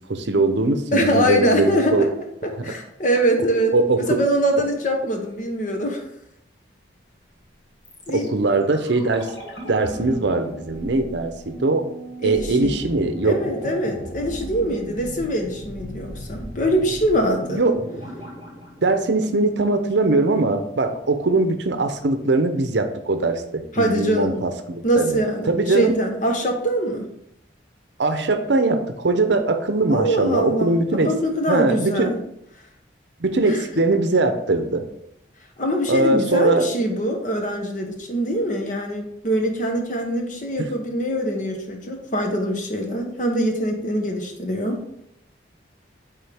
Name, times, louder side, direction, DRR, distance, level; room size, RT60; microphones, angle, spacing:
voice 1, 0.1-2.1 2.6-2.7 3.7-4.2 8.1-9.3 9.7-11.9 12.2-13.4 17.5-17.8 18.8-25.9 28.0-31.1 31.5-32.1 33.2-34.8 35.9-36.7 40.6-40.7, right 2 dB, 65° right, 8 dB, 0.7 m, -21 dB
voice 2, 0.9-2.1 2.4-6.0 8.1-8.3 12.2-12.8 13.2-17.6 23.7-24.4 24.8-27.1 29.9-32.2 33.5-33.6 35.6-44.8, right 1 dB, 40° left, 3 dB, 1.0 m, -23 dB
sound 1, 7.8-19.8 20.1-20.2, equal, 60° left, 1.8 m, -37 dB
8.9 x 3.7 x 3.5 m, 0.76 s
head